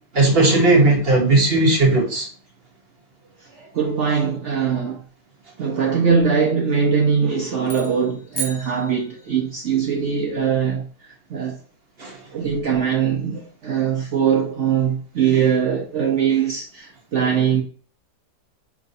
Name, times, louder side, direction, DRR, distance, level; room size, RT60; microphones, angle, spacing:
voice 1, 0.1-2.3 12.0-12.2, right 2 dB, 40° right, 1.0 m, -16 dB
voice 2, 3.4-5.0 5.6-11.6 12.3-17.6, right 7 dB, 65° right, 0.7 m, -21 dB
sound 1, 7.6-9.6, right 3 dB, 40° left, 0.8 m, -34 dB
4.9 x 3.1 x 2.7 m
omnidirectional pair, 1.9 m